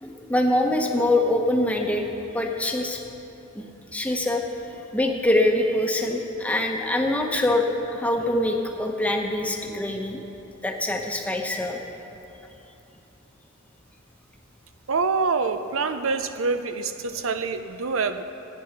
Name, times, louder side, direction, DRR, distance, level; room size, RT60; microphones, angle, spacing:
voice 1, 0.0-2.1 2.3-3.0 3.5-3.6 3.9-4.4 4.7-7.6 7.9-10.2 10.6-11.8, left 1 dB, 5° left, 1 dB, 1.0 m, -24 dB
voice 2, 14.9-18.2, right 4 dB, 75° right, 9 dB, 0.6 m, -26 dB
15.0 x 9.4 x 5.9 m, 2.9 s
head